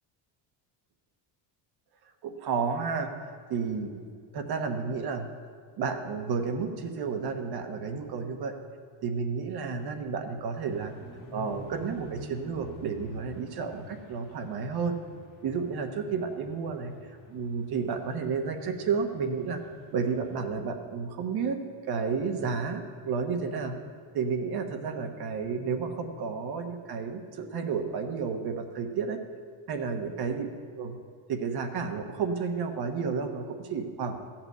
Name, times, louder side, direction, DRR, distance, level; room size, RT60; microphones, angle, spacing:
voice 1, 2.2-4.0 4.3-5.2 5.8-8.6 9.0-10.9 11.3-15.0 15.4-19.6 19.9-21.6 21.9-23.7 24.1-29.2 29.7-30.5 30.8-31.0 31.3-34.2, right 5 dB, 50° right, 5 dB, 1.2 m, -31 dB
sound 1, 10.7-20.4, left 1 dB, 40° left, 2.0 m, -49 dB
13.5 x 5.9 x 8.0 m, 2.1 s
cardioid pair, 145°, 49 cm